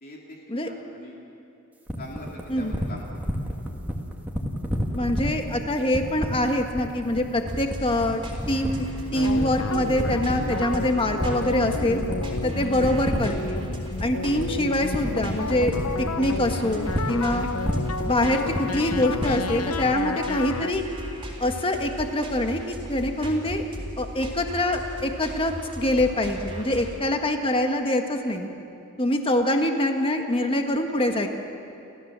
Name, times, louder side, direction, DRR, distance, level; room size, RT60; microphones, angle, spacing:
voice 1, 0.0-1.2 2.0-3.2 27.0-27.1, left 1 dB, 45° left, -2 dB, 2.8 m, -43 dB
sound 1, 1.9-19.6, equal, 10° right, 2.1 m, -29 dB
voice 2, 4.9-12.0 12.4-13.6 14.0-17.5 18.0-20.8 21.4-23.7 24.0-28.5 29.0-31.3, left 1 dB, 25° left, 5 dB, 1.5 m, -25 dB
sound 2, 7.4-27.0, equal, 25° right, 3.6 m, -37 dB
sound 3, 9.1-20.7, left 4 dB, 90° left, 0.7 m, -32 dB
30.0 x 14.0 x 7.5 m, 2.8 s
head